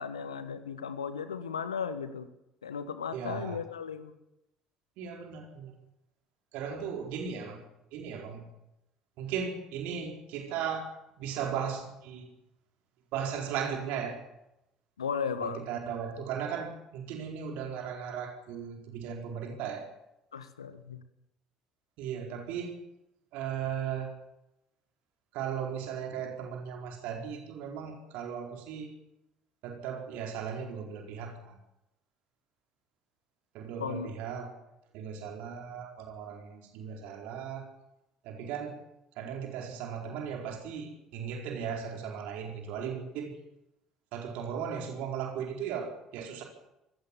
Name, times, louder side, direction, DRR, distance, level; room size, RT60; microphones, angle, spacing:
voice 1, 0.0-2.3 2.6-4.1 15.0-15.7 20.3-21.0 33.8-34.1, left 6 dB, 80° left, 11 dB, 1.6 m, -35 dB
voice 2, 3.1-3.6 5.0-5.7 6.5-7.6 7.9-8.5 9.2-10.9 11.2-12.3 13.1-14.2 15.4-19.9 22.0-22.8 23.3-24.1 25.3-29.0 29.6-31.5 33.5-34.5 34.9-37.7 38.2-38.8 39.2-43.3 44.1-46.4, right 7 dB, 60° right, 2 dB, 4.5 m, -37 dB
24.0 x 18.0 x 7.3 m, 0.87 s
figure-of-eight pair, 50°, 3 cm